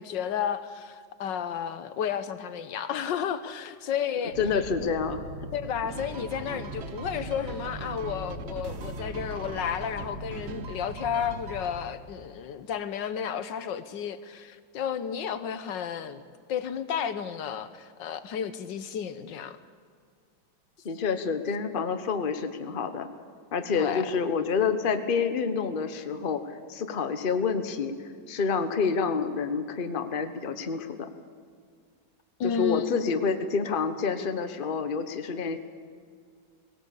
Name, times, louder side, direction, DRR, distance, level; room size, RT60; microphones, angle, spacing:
voice 1, 0.0-4.4 4.8-4.9 5.5-16.2 16.5-19.6 23.7-24.2 32.4-32.9, left 8 dB, 70° left, 12 dB, 1.6 m, -32 dB
sound 1, 4.3-11.8, equal, 75° right, 3.8 m, -40 dB
voice 2, 4.4-5.2 20.8-23.1 23.5-26.4 26.7-27.9 28.3-31.1 32.4-35.6, left 5 dB, 35° left, 9 dB, 1.0 m, -28 dB
sound 2, 5.9-11.8, right 7 dB, 50° right, 0.8 m, -42 dB
19.5 x 17.5 x 8.4 m, 2.1 s
omnidirectional pair, 2.1 m